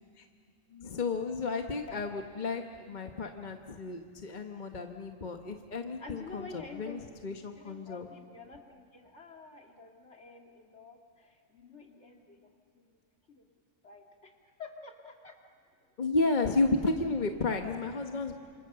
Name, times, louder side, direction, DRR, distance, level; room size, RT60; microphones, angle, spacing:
voice 1, 0.7-8.1 16.0-18.3, left 3 dB, 35° left, 4 dB, 1.2 m, -32 dB
voice 2, 6.0-7.1 7.5-13.0 13.3-13.4 13.8-15.4 15.7-15.8, left 4 dB, 55° left, 2 dB, 2.7 m, -49 dB
28.0 x 26.5 x 6.8 m, 2.2 s
omnidirectional pair, 1.4 m